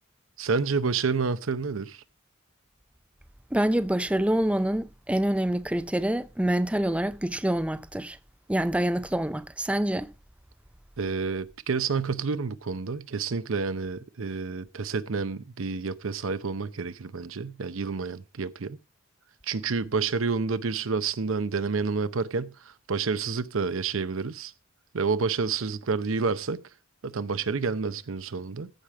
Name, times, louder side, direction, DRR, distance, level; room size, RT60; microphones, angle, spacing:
voice 1, 0.4-2.0 11.0-18.8 19.4-24.5 24.9-26.6 27.0-28.7, right 4 dB, 75° right, 0.7 m, -29 dB
voice 2, 3.5-8.2 8.5-10.1, right 1 dB, 5° right, 0.5 m, -26 dB
14.5 x 5.0 x 4.8 m
head